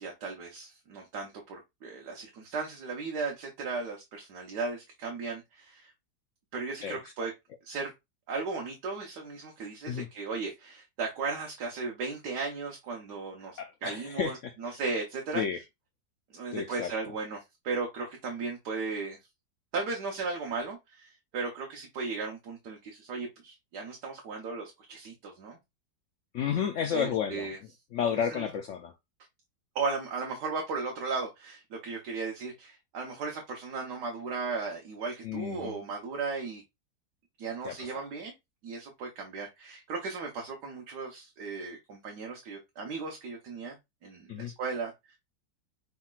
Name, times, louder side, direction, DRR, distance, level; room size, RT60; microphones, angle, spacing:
voice 1, 0.0-5.9 6.5-7.3 7.6-7.9 8.3-15.4 16.3-19.2 19.7-25.6 26.9-27.6 28.1-28.5 29.7-36.6 37.4-38.3 38.6-43.8 44.0-45.2, right 4 dB, 75° right, 1.5 m, -36 dB
voice 2, 13.6-14.8 15.3-15.6 16.5-16.9 26.3-27.5 27.9-28.9 35.2-35.7 37.6-38.0 44.3-44.5, left 8 dB, 75° left, 0.7 m, -32 dB
5.7 x 3.6 x 2.4 m
omnidirectional pair, 1.8 m